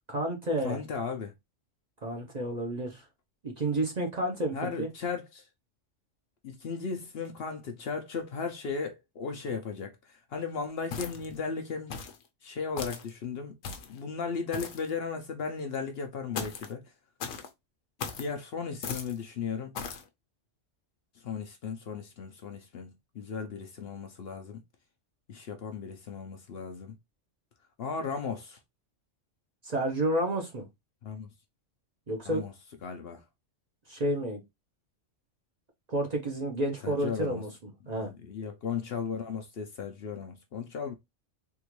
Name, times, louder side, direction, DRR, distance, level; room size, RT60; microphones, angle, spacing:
voice 1, 0.1-0.8 2.0-3.0 3.4-4.9 29.6-30.7 32.1-32.4 33.9-34.4 35.9-38.1, right 1 dB, 40° right, 0.8 m, -30 dB
voice 2, 0.6-1.3 4.5-5.4 6.4-12.0 12.4-13.6 13.9-16.8 18.2-19.7 21.2-24.6 25.3-26.9 27.8-28.6 31.0-31.3 32.3-32.5 32.8-33.2 36.8-37.5 37.9-40.9, left 5 dB, 60° left, 0.8 m, -36 dB
sound 1, 10.9-11.4 11.9-12.2 12.8-13.1 13.6-14.0 14.5-14.9 16.3-16.7 17.2-17.5 18.0-18.3 18.8-19.2 19.7-20.0, left 6 dB, 80° left, 1.1 m, -37 dB
3.6 x 2.4 x 3.0 m
omnidirectional pair, 1.3 m